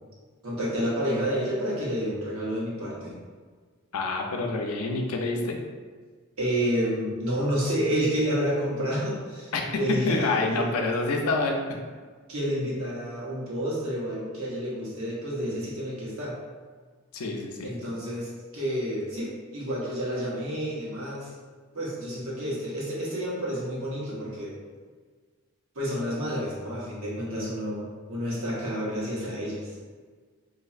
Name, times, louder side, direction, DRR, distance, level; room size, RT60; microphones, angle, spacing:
voice 1, 0.4-3.1 6.4-10.8 12.3-16.4 17.6-21.3 21.7-24.6 25.7-29.7, equal, 70° right, -6 dB, 1.0 m, -30 dB
voice 2, 3.9-5.6 9.5-9.6 9.9-11.8 17.1-17.7, left 3 dB, 85° left, 2 dB, 0.5 m, -27 dB
4.1 x 2.6 x 2.4 m, 1.5 s
head